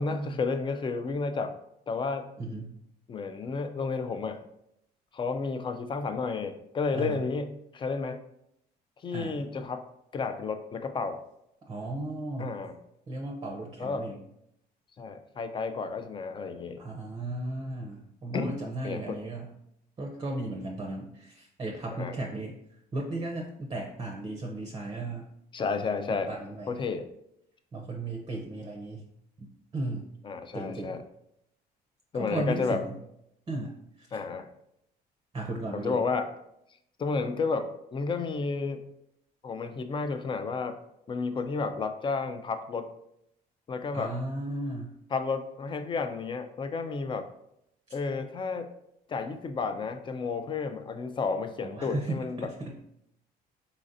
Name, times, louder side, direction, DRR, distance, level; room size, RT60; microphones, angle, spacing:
voice 1, 0.0-1.5 1.9-2.3 3.1-4.4 5.1-8.2 9.0-9.8 10.1-11.2 12.4-12.8 13.8-14.1 15.0-16.8 18.3-18.6 18.8-19.2 21.9-22.2 25.5-26.3 26.7-27.1 30.2-31.0 32.1-32.8 34.1-34.5 35.7-36.3 37.0-38.8 39.4-40.8 41.1-42.9 43.7-44.1 45.1-47.3 47.9-48.7 49.1-52.5, left 4 dB, 30° left, 9 dB, 0.4 m, -31 dB
voice 2, 2.4-2.7 6.9-7.2 9.1-9.4 11.7-12.5 13.1-14.2 16.8-19.5 20.0-22.6 22.9-25.3 26.1-26.7 27.7-29.1 29.4-30.1 30.5-31.0 32.1-33.0 33.5-34.1 35.3-36.0 43.9-44.9 47.9-48.0 51.6-52.8, right 2 dB, 25° right, 1 dB, 0.6 m, -35 dB
4.0 x 3.8 x 2.6 m, 0.77 s
cardioid pair, 110°, 17 cm